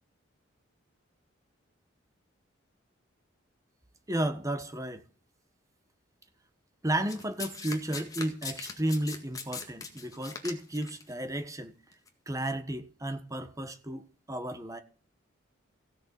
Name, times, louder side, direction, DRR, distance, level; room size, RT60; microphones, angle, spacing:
voice 1, 4.1-5.0 6.8-11.7 12.3-14.8, right 1 dB, 15° right, 1.3 m, -33 dB
Domestic sounds home sounds, 7.1-11.0 11.9-12.1, left 4 dB, 15° left, 1.8 m, -40 dB
16.0 x 6.8 x 7.1 m
head